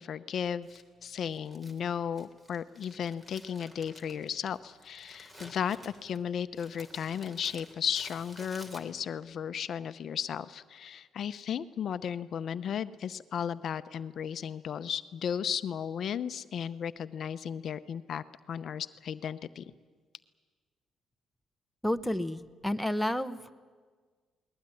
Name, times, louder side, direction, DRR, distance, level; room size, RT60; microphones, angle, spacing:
voice 1, 0.0-19.6, left 8 dB, 60° left, 12 dB, 0.7 m, -35 dB
Crumpling crinkling, 0.6-9.3, equal, 15° right, 3.2 m, -53 dB
voice 2, 21.8-23.5, left 1 dB, 5° left, 8 dB, 0.9 m, -31 dB
20.5 x 20.0 x 9.9 m, 1.5 s
cardioid pair, 95°, 0 cm